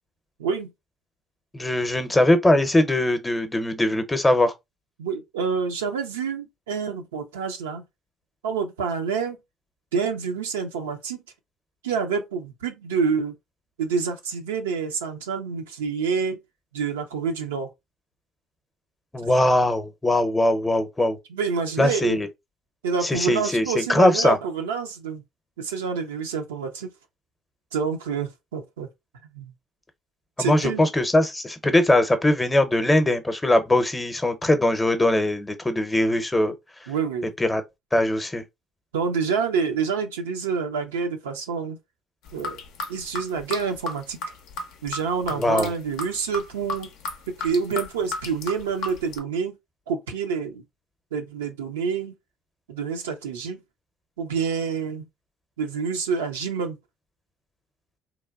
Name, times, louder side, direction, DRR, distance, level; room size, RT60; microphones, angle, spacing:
voice 1, 0.4-0.7 5.0-7.8 8.4-9.4 9.9-11.2 11.8-13.3 13.8-16.4 16.7-17.7 21.3-22.2 22.8-25.2 25.6-26.9 27.7-28.9 29.3-29.5 30.4-30.9 36.9-37.3 38.9-41.8 42.3-42.6 42.9-44.2 44.8-46.9 47.3-49.5 49.9-50.6 51.1-52.1 52.7-53.6 54.2-55.1 55.6-56.8, right 5 dB, 90° right, 0.4 m, -27 dB
voice 2, 1.5-4.5 19.1-21.2 21.8-22.3 23.0-24.4 30.4-36.5 37.4-37.6 37.9-38.4 45.3-45.7, left 1 dB, 15° left, 0.6 m, -21 dB
sound 1, 42.3-49.2, left 2 dB, 75° left, 0.4 m, -34 dB
2.9 x 2.2 x 2.3 m
hypercardioid pair, 60°, 0 cm